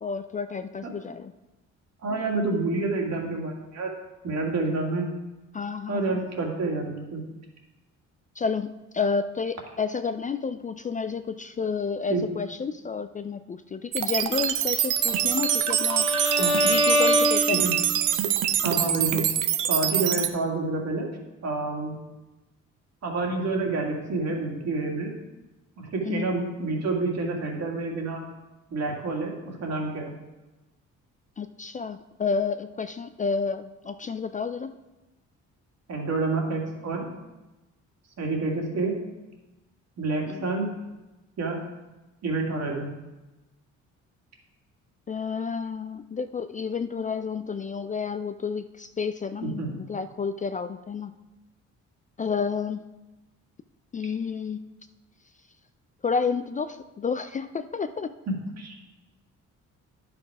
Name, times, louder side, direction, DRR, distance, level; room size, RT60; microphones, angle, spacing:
voice 1, 0.0-1.3 5.5-6.2 8.4-16.1 16.6-17.7 26.0-26.3 31.4-34.8 40.3-40.5 45.1-51.1 52.2-52.8 53.9-54.7 56.0-58.2, left 5 dB, 25° left, 10 dB, 0.4 m, -30 dB
voice 2, 2.0-3.9 4.2-5.1 5.9-7.2 12.1-12.2 16.4-16.6 17.5-17.7 18.6-19.3 19.7-21.1 21.4-22.0 23.0-25.2 25.8-28.2 28.7-30.1 35.9-37.1 38.2-39.0 40.0-40.7 41.4-41.6 42.2-42.9 49.4-49.8 58.3-58.9, right 3 dB, 60° right, 0 dB, 2.2 m, -28 dB
sound 1, 13.9-20.3, right 10 dB, 85° right, 0.7 m, -25 dB
Bowed string instrument, 15.0-18.1, left 1 dB, 5° left, 2.3 m, -25 dB
9.9 x 6.0 x 4.8 m, 1.1 s
cardioid pair, 90°, 30 cm